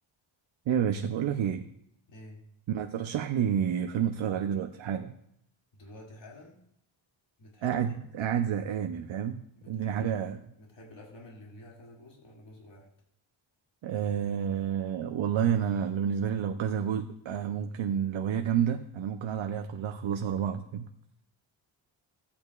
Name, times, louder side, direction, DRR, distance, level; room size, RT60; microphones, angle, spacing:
voice 1, 0.7-1.7 2.7-5.1 7.6-10.4 13.8-20.9, right 8 dB, 70° right, 5 dB, 0.7 m, -29 dB
voice 2, 2.1-2.4 5.7-6.6 7.4-8.0 8.4-8.5 9.6-10.3 10.6-12.9, left 1 dB, 65° left, -3 dB, 2.5 m, -50 dB
16.5 x 8.7 x 2.4 m, 0.73 s
wide cardioid pair, 115°, 48 cm